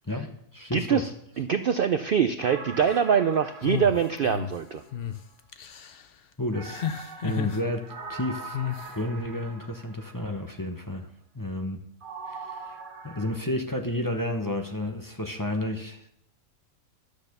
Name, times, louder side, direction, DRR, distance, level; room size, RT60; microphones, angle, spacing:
voice 1, 0.0-1.1 2.9-3.0 6.4-6.8 7.2-8.6 8.9-11.1 11.3-11.8 12.3-12.8 13.0-16.1, left 1 dB, 15° left, 4 dB, 0.8 m, -31 dB
voice 2, 0.7-1.1 1.4-4.8, right 7 dB, 75° right, 9 dB, 0.5 m, -24 dB
sound 1, 2.4-5.2 6.5-10.3 12.0-13.4, right 4 dB, 40° right, 1.1 m, -42 dB
sound 2, 3.6-4.5 4.9-5.2 5.5-6.0 6.7-7.6 8.5-8.9, left 9 dB, 50° left, 0.7 m, -32 dB
12.0 x 6.7 x 6.7 m, 0.74 s
omnidirectional pair, 1.6 m